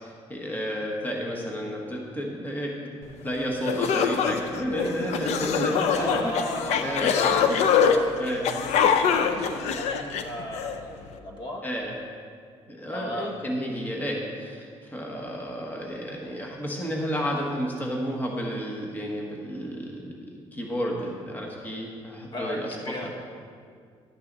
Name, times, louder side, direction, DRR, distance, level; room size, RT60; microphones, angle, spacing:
voice 1, 0.0-2.9 3.2-6.3 6.8-7.6 8.2-8.5 11.6-11.9 12.6-23.1, equal, 15° left, -1 dB, 1.5 m, -31 dB
sound 1, 3.3-3.4 3.6-10.7, left 7 dB, 75° left, 0.7 m, -24 dB
voice 2, 5.9-7.3 7.7-11.7 12.9-13.4 22.3-23.1, equal, 45° left, 0 dB, 1.7 m, -36 dB
12.0 x 9.4 x 4.0 m, 2.1 s
cardioid pair, 110°, 11 cm